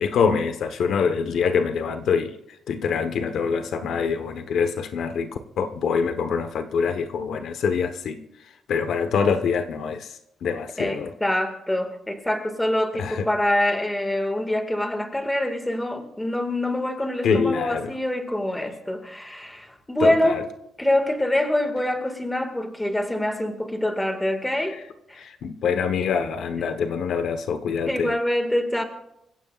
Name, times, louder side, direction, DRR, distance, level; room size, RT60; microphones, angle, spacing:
voice 1, 0.0-2.3 2.7-5.3 5.6-8.2 8.7-10.1 10.4-11.1 12.9-13.3 17.2-17.9 20.0-20.4 25.1-28.1, left 6 dB, 70° left, 1.2 m, -25 dB
voice 2, 10.8-20.5 20.8-24.8 25.1-25.2 27.9-28.8, left 1 dB, 10° left, 2.0 m, -25 dB
25.5 x 15.5 x 2.5 m
cardioid pair, 140°, 0 cm